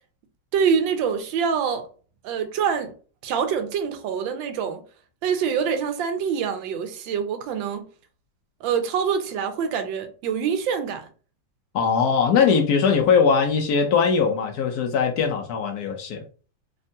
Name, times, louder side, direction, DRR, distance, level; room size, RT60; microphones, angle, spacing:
voice 1, 0.5-1.9 2.2-2.9 3.2-4.8 5.2-7.8 8.6-11.1, right 7 dB, 80° right, 1.3 m, -25 dB
voice 2, 11.7-16.2, left 6 dB, 75° left, 0.9 m, -20 dB
3.5 x 2.2 x 2.6 m
omnidirectional pair, 2.1 m